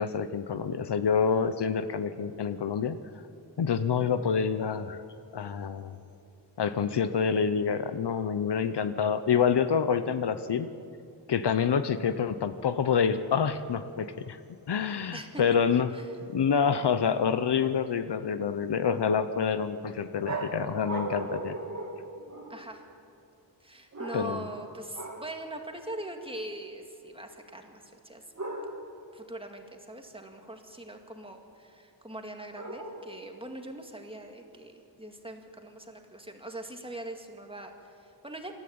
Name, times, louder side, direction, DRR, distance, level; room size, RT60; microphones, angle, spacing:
voice 1, 0.0-3.0 3.6-5.0 5.3-6.0 6.6-10.7 11.3-14.4 14.7-15.9 16.3-21.6 24.1-24.4, left 6 dB, 65° left, 11 dB, 0.8 m, -27 dB
voice 2, 15.1-15.4 15.9-16.2 22.5-22.8 23.6-28.2 29.1-38.5, right 1 dB, 10° right, 4 dB, 2.1 m, -42 dB
sound 1, 20.2-22.8 23.9-24.6 24.9-25.4 28.4-29.0 32.6-33.3, right 2 dB, 35° right, 2.5 m, -37 dB
27.0 x 13.5 x 8.7 m, 2.6 s
wide cardioid pair, 130°, 45 cm